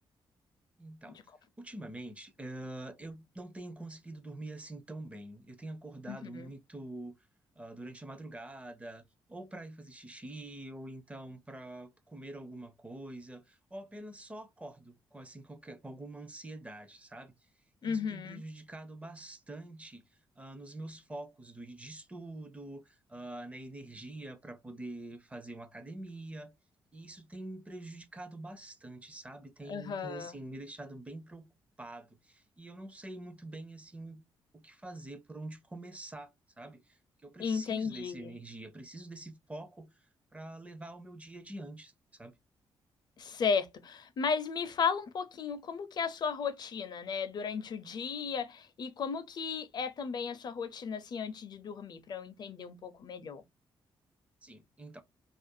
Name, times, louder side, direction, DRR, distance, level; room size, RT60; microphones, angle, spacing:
voice 1, 0.8-1.2 1.6-7.1 7.6-17.3 17.8-20.0 20.4-22.8 23.1-26.5 26.9-31.5 31.8-34.2 34.5-36.3 36.6-36.8 37.2-39.9 40.3-41.9 42.2-42.3 54.4-55.0, right 1 dB, 15° right, 0.5 m, -45 dB
voice 2, 6.1-6.5 17.8-18.4 29.7-30.3 37.4-38.3 43.2-53.4, left 6 dB, 50° left, 0.5 m, -35 dB
2.4 x 2.2 x 2.6 m
cardioid pair, 115°, 9 cm